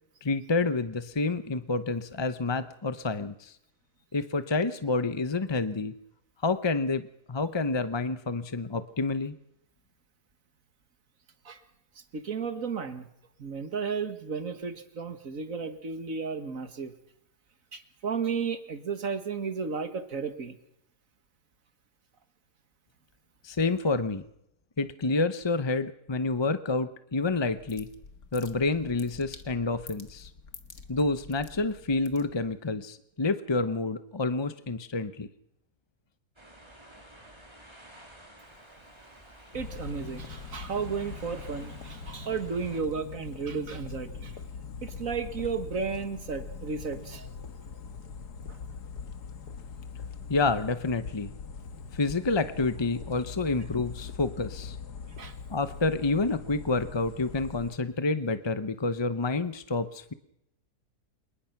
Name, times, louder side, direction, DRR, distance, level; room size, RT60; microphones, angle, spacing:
voice 1, 0.2-3.5 4.1-5.9 6.4-7.0 7.3-9.4 23.4-24.2 24.8-27.9 28.3-30.3 30.9-35.3 50.3-51.3 51.9-54.8 55.5-60.1, left 3 dB, 25° left, 11 dB, 0.5 m, -28 dB
voice 2, 12.0-13.1 13.4-16.9 17.7-20.6 39.5-44.4 44.8-47.3 48.5-48.6 55.2-55.4, right 5 dB, 60° right, 9 dB, 2.1 m, -33 dB
sound 1, 27.2-32.7, left 5 dB, 65° left, 2.2 m, -49 dB
sound 2, 36.4-42.8, right 1 dB, 15° right, 3.5 m, -51 dB
sound 3, 39.5-57.8, left 5 dB, 85° left, 2.0 m, -42 dB
27.0 x 20.0 x 5.9 m, 0.78 s
omnidirectional pair, 1.7 m